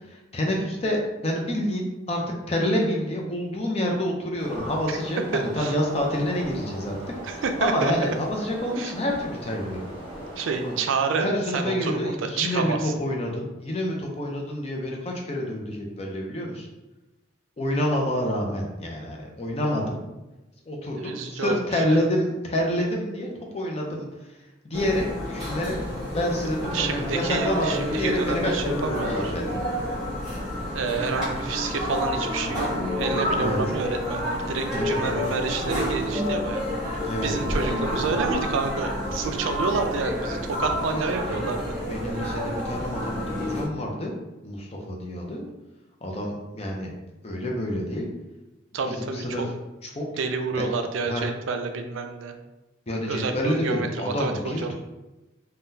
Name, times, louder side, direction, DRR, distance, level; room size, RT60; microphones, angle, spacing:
voice 1, 0.1-2.2 2.5-7.0 7.3-9.9 10.6-10.8 11.2-16.7 17.6-20.0 20.7-23.3 23.5-24.1 24.6-25.8 26.1-29.5 33.4-33.6 34.7-35.2 37.0-38.0 40.7-41.5 41.9-44.2 44.4-45.5 46.0-46.9 47.2-48.1 48.9-49.4 49.8-50.0 50.6-50.7 51.0-51.2 52.9-54.7, left 1 dB, 30° left, 0 dB, 0.5 m, -28 dB
sound 1, 4.4-10.8, right 1 dB, 25° right, 0.8 m, -39 dB
voice 2, 5.3-5.7 7.2-7.9 8.8-8.9 10.4-12.9 20.9-22.1 26.7-29.3 30.7-32.7 33.0-36.7 37.2-41.7 48.7-49.5 50.2-52.3 53.1-54.7, right 4 dB, 80° right, 6 dB, 0.4 m, -29 dB
sound 2, 24.7-43.7, left 1 dB, 5° right, 1.4 m, -30 dB
sound 3, 32.6-38.3, equal, 45° right, 1.3 m, -33 dB
3.6 x 2.2 x 2.7 m, 1.0 s
head